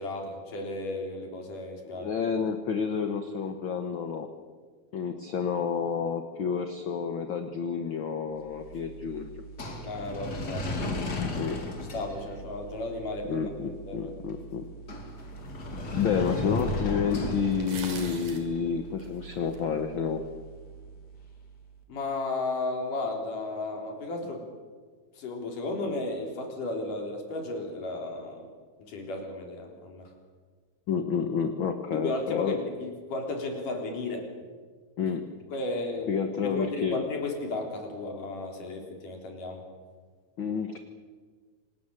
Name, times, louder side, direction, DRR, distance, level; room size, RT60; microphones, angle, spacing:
voice 1, 0.0-2.1 9.8-10.7 11.9-13.5 13.9-14.1 21.9-24.5 25.2-28.5 28.9-30.1 31.9-34.3 35.5-36.1 36.4-39.6, left 2 dB, 80° left, 2 dB, 5.4 m, -34 dB
voice 2, 1.9-4.3 4.9-9.4 11.3-11.6 13.3-14.6 15.8-20.2 30.9-32.6 35.0-35.2 36.1-37.0 40.4-40.8, left 6 dB, 50° left, 7 dB, 1.6 m, -30 dB
sound 1, 8.5-21.6, left 1 dB, 30° left, 3.0 m, -36 dB
sound 2, 15.5-15.6 16.6-16.7 17.5-18.5 19.0-19.6, right 5 dB, 75° right, 4.6 m, -41 dB
27.0 x 19.5 x 9.1 m, 1.5 s
omnidirectional pair, 3.7 m